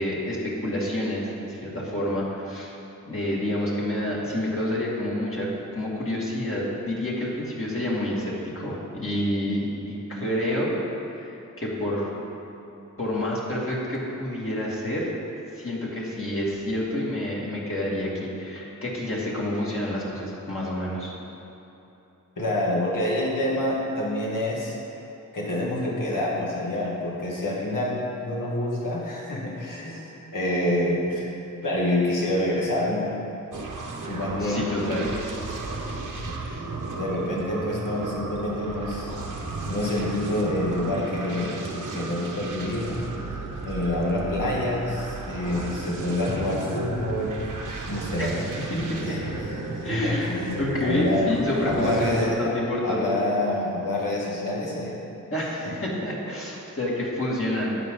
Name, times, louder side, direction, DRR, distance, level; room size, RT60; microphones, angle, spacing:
voice 1, 0.0-2.7 3.1-10.7 11.1-12.1 13.0-15.1 15.5-21.1 34.4-35.1 48.2-49.2 49.8-53.0 55.3-57.8, left 1 dB, 40° left, -6 dB, 2.4 m, -28 dB
voice 2, 22.4-24.8 25.3-31.3 31.6-33.1 34.1-34.7 35.7-36.6 36.9-39.1 39.7-41.6 41.9-42.9 43.2-43.4 43.7-47.4 47.9-48.4 48.9-49.2 49.8-51.4 51.6-52.5 52.8-55.0 55.6-55.7, left 1 dB, 75° left, -4 dB, 2.3 m, -27 dB
sound 1, 33.5-52.3, right 3 dB, 75° right, 1.1 m, -34 dB
12.0 x 8.9 x 3.9 m, 2.9 s
wide cardioid pair, 75°, 32 cm